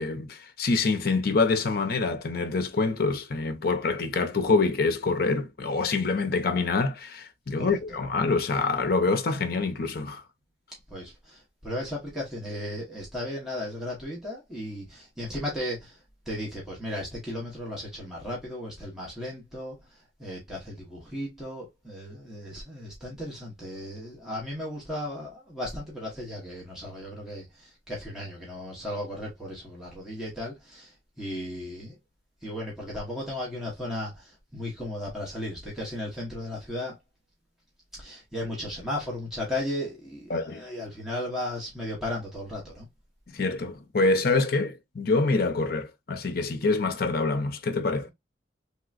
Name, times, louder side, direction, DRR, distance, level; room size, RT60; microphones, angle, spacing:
voice 1, 0.0-10.2 40.3-40.6 43.3-48.1, left 3 dB, 50° left, 0.6 m, -26 dB
voice 2, 10.9-16.0 16.3-32.0 32.4-37.0 38.0-42.9, left 1 dB, ahead, 1.1 m, -35 dB
3.3 x 2.9 x 2.4 m
head